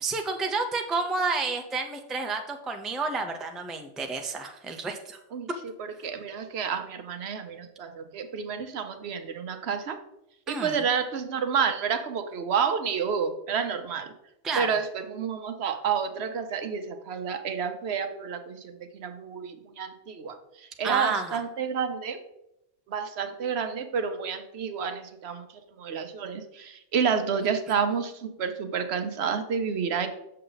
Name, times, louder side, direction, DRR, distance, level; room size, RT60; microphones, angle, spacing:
voice 1, 0.0-5.2 5.5-5.6 10.5-10.8 14.4-14.8 20.8-21.4, right 4 dB, ahead, 4 dB, 0.5 m, -30 dB
voice 2, 5.8-10.0 10.5-14.1 14.6-22.2 22.9-25.5 25.8-30.1, right 6 dB, 70° right, 8 dB, 1.0 m, -30 dB
6.6 x 6.6 x 3.9 m, 0.84 s
omnidirectional pair, 1.1 m